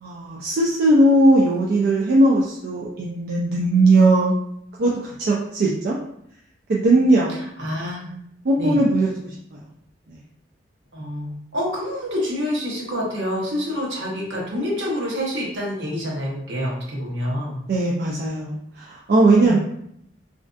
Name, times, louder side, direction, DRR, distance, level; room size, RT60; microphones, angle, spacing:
voice 1, 0.0-4.3 4.8-5.9 6.7-7.3 8.4-9.3 17.7-19.6, right 2 dB, 60° right, -3 dB, 0.4 m, -18 dB
voice 2, 7.6-8.1 8.6-8.8 10.9-17.5 19.3-19.6, equal, 80° right, -3 dB, 0.8 m, -27 dB
2.5 x 2.2 x 2.4 m, 0.73 s
head